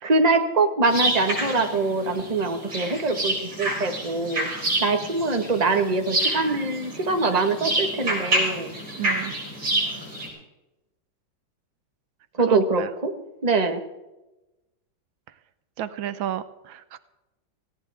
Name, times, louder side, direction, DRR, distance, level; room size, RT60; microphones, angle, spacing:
voice 1, 0.0-4.5 4.8-8.7 12.4-13.1 13.4-13.8, right 3 dB, 20° right, 6 dB, 1.5 m, -23 dB
sound 1, 0.9-10.3, right 1 dB, 55° right, 6.5 m, -28 dB
voice 2, 9.0-9.4 12.5-12.9 15.8-17.0, right 11 dB, 85° right, 13 dB, 1.6 m, -32 dB
19.0 x 17.0 x 3.6 m, 0.98 s
omnidirectional pair, 2.2 m